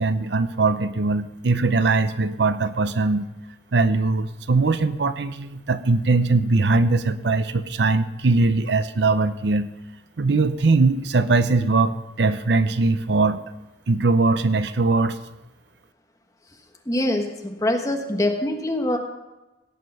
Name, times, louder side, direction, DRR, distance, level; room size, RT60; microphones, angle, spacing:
voice 1, 0.0-3.2 3.7-9.7 10.2-13.4 13.9-15.2, right 3 dB, 75° right, 12 dB, 0.7 m, -21 dB
voice 2, 16.8-19.0, left 1 dB, 20° left, 2 dB, 1.4 m, -24 dB
17.5 x 6.7 x 5.4 m, 1.1 s
head